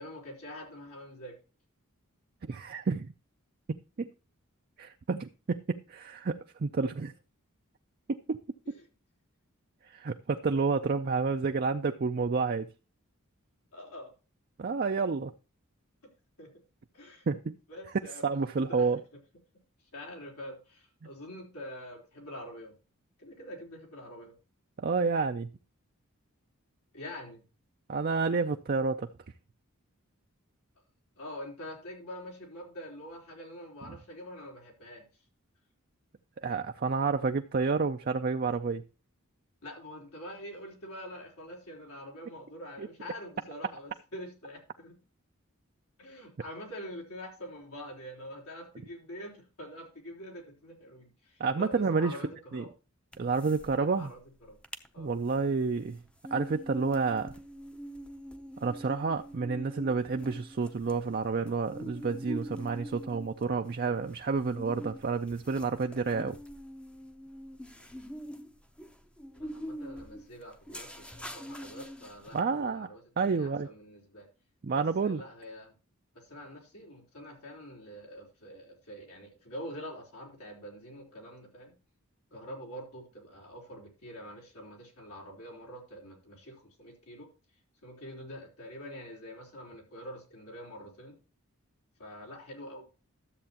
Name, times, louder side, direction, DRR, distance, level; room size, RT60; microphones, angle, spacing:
voice 1, 0.0-1.4 8.7-8.9 13.7-14.1 16.4-16.5 16.9-17.3 17.7-18.2 18.7-18.9 19.9-22.8 23.2-24.3 26.9-27.4 31.2-35.1 39.6-45.0 46.0-52.7 53.7-54.6 54.9-55.1 69.3-74.3 74.7-75.7 76.2-81.8 82.3-87.3 87.8-91.2 92.0-92.9, equal, 90° left, 3.8 m, -45 dB
voice 2, 2.4-3.1 3.7-4.1 4.8-7.1 8.1-8.4 9.8-12.7 14.6-15.3 17.3-17.6 18.2-19.0 24.8-25.5 27.9-29.1 36.4-38.8 42.8-42.9 51.4-52.2 52.5-52.7 53.2-54.1 55.0-56.0 56.3-57.3 58.6-66.4 72.3-72.9 73.2-73.7 74.6-75.2, right 4 dB, 45° right, 0.4 m, -30 dB
sound 1, 53.1-53.7 54.0-54.1 54.5-54.9 55.3-72.4, equal, 5° left, 0.6 m, -44 dB
13.0 x 7.7 x 2.9 m
head